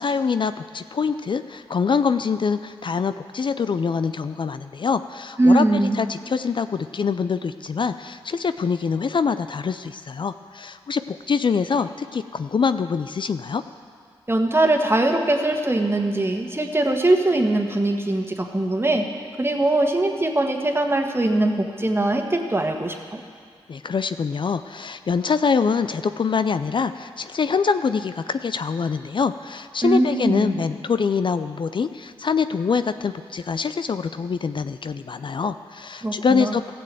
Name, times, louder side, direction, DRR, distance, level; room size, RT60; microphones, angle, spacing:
voice 1, 0.0-13.6 23.7-36.6, left 5 dB, 50° left, 11 dB, 0.4 m, -24 dB
voice 2, 5.4-6.0 14.3-19.0 19.4-23.2 29.8-30.6 36.0-36.6, right 2 dB, 20° right, 4 dB, 1.6 m, -21 dB
14.5 x 6.9 x 7.6 m, 2.1 s
supercardioid pair, 40°, 11 cm